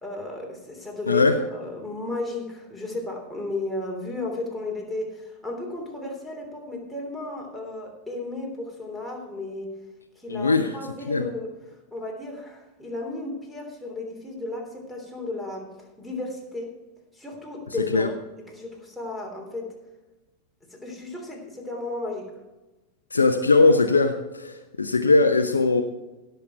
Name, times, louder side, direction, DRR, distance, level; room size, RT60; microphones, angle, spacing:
voice 1, 0.0-1.2 1.5-9.7 10.1-11.5 11.9-15.7 16.0-16.7 17.1-19.8 20.7-22.3, left 2 dB, ahead, -2 dB, 3.2 m, -34 dB
voice 2, 10.3-10.7 11.1-11.2 17.9-18.1 23.1-25.8, left 3 dB, 75° left, 5 dB, 0.7 m, -20 dB
16.5 x 6.8 x 4.6 m, 1.1 s
figure-of-eight pair, 90°, 0 cm